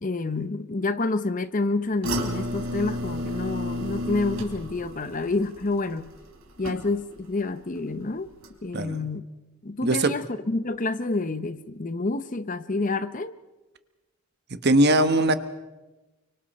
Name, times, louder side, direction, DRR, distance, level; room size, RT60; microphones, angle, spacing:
voice 1, 0.0-6.1 6.6-8.3 8.6-9.2 9.6-13.3, left 3 dB, 35° left, 0.7 m, -28 dB
sound 1, 2.0-7.2 7.6-8.0 8.4-8.5, equal, 70° right, 3.7 m, -32 dB
voice 2, 9.8-10.1 14.5-15.3, right 1 dB, 50° right, 1.2 m, -20 dB
29.5 x 24.5 x 4.3 m
head